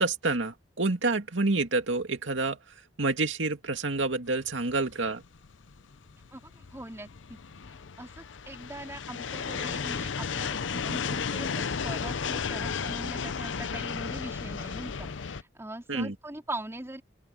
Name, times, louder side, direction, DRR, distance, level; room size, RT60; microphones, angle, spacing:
voice 1, 0.0-2.6 3.0-5.2 15.9-16.2, right 3 dB, 85° right, 2.3 m, -28 dB
sound 1, 4.5-15.4, left 6 dB, 85° left, 0.7 m, -34 dB
voice 2, 6.3-7.4 7.7-17.0, right 1 dB, 15° right, 3.9 m, -41 dB
open air
head